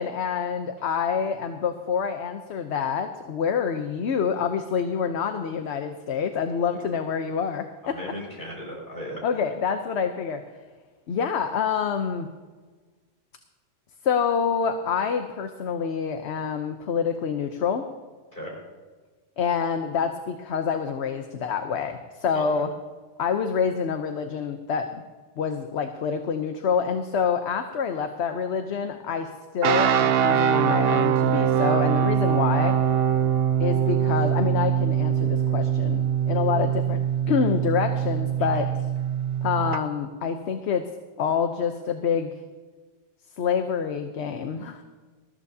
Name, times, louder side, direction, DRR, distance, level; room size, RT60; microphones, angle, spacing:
voice 1, 0.0-8.0 9.2-10.4 11.1-12.3 14.0-17.8 19.4-22.7 23.2-25.0 25.4-32.8 33.6-37.0 37.3-38.7 39.4-40.8 41.2-42.3 43.4-44.8, left 6 dB, 65° left, 7 dB, 1.0 m, -27 dB
voice 2, 7.8-9.2 18.3-18.5 22.3-22.4 38.5-38.6, equal, 45° left, -3 dB, 5.7 m, -37 dB
sound 1, 29.6-39.8, right 9 dB, 65° right, 0.7 m, -23 dB
20.5 x 14.0 x 2.7 m, 1.4 s
omnidirectional pair, 1.2 m